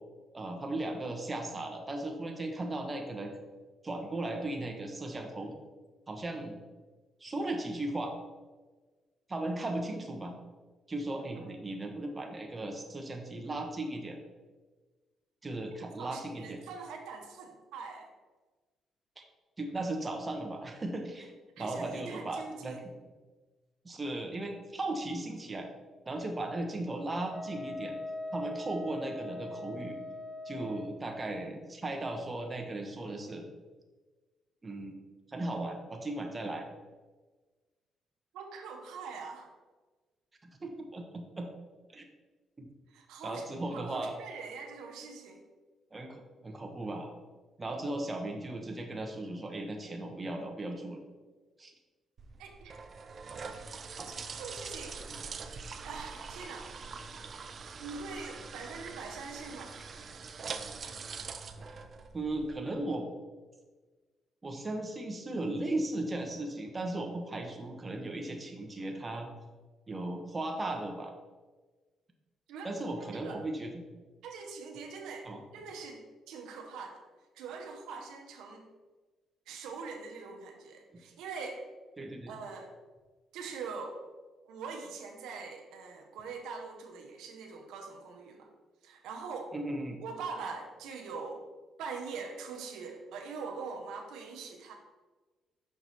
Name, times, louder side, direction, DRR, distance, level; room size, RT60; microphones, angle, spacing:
voice 1, 0.3-3.3 3.8-5.5 6.1-6.6 7.2-8.1 9.3-10.3 10.9-14.2 15.4-16.6 19.2-19.3 19.6-21.3 21.6-22.8 23.8-25.7 26.0-27.9 28.3-30.0 30.4-33.5 34.6-35.0 35.3-36.6 40.4-41.5 41.9-42.0 42.6-42.7 43.2-44.2 45.9-47.1 47.6-51.0 51.6-51.7 54.0-54.1 61.6-61.8 62.1-63.1 64.4-69.3 69.9-71.1 72.6-73.8 75.2-75.4 82.0-82.3 89.5-90.0, right 2 dB, 25° right, 3 dB, 0.9 m, -36 dB
voice 2, 15.8-18.1 21.6-22.8 38.3-39.5 42.9-43.4 43.7-45.4 52.4-52.7 54.4-55.0 55.8-56.7 57.8-59.8 72.5-72.7 73.1-73.4 74.2-77.0 77.3-78.7 79.5-81.6 82.3-82.7 83.3-84.0 84.4-88.5 88.8-89.5 90.0-91.4 91.8-94.7, right 4 dB, 90° right, 2 dB, 0.9 m, -43 dB
Wind instrument woodwind instrument, 27.3-31.0, left 1 dB, 10° left, 0.4 m, -41 dB
sound 1, 52.2-62.6, right 5 dB, 45° right, 0.5 m, -43 dB
6.0 x 4.8 x 4.1 m, 1.3 s
cardioid pair, 90°, 0 cm